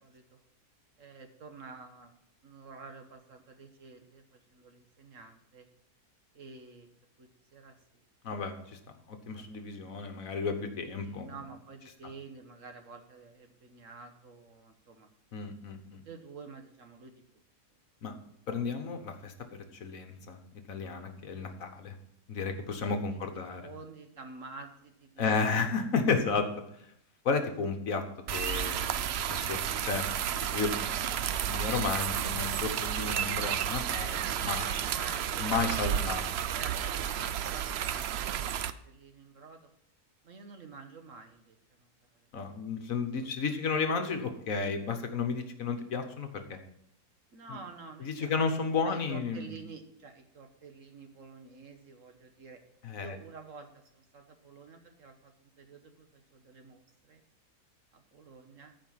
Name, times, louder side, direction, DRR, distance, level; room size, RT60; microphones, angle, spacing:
voice 1, 0.0-0.4 1.0-5.7 6.3-6.9 7.2-7.7 9.3-9.5 9.7-10.0 11.0-15.1 16.0-17.1 22.4-22.6 23.1-23.2 23.6-25.2 25.5-25.7 34.9-39.7 40.2-41.9 43.2-43.3 43.6-44.1 47.3-48.4 48.8-52.6 53.0-57.2 57.9-58.7, right 4 dB, 55° right, 5 dB, 1.4 m, -49 dB
voice 2, 8.2-8.5 9.1-11.3 15.3-16.0 18.0-18.1 18.5-19.3 19.8-20.4 20.7-21.9 22.3-23.6 25.2-26.5 27.2-28.0 28.3-30.1 30.5-34.7 35.4-36.2 42.3-46.4 47.5-47.6 48.0-49.6 52.8-53.2, left 5 dB, 60° left, 6 dB, 1.4 m, -32 dB
sound 1, 28.3-38.7, right 9 dB, 80° right, 0.5 m, -32 dB
14.0 x 5.2 x 5.7 m, 0.75 s
omnidirectional pair, 1.7 m